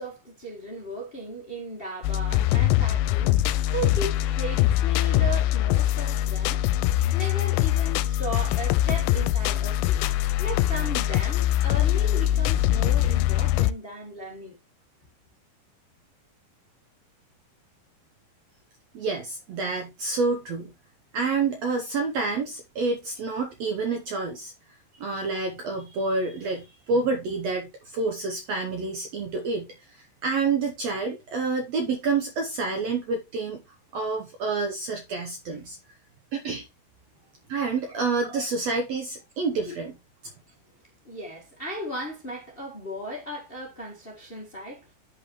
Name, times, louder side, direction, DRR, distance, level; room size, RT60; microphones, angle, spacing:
voice 1, 0.0-6.6 7.1-10.0 10.4-14.5 37.9-38.7 39.6-39.7 41.0-44.8, right 1 dB, 65° left, 0.5 m, -36 dB
sound 1, 2.0-13.7, left 13 dB, 85° left, 2.4 m, -23 dB
voice 2, 18.9-20.7 21.1-24.5 25.0-33.6 33.9-35.8 36.3-36.6 37.5-39.9, right 4 dB, 75° right, 1.5 m, -28 dB
11.0 x 5.2 x 3.1 m
omnidirectional pair, 4.2 m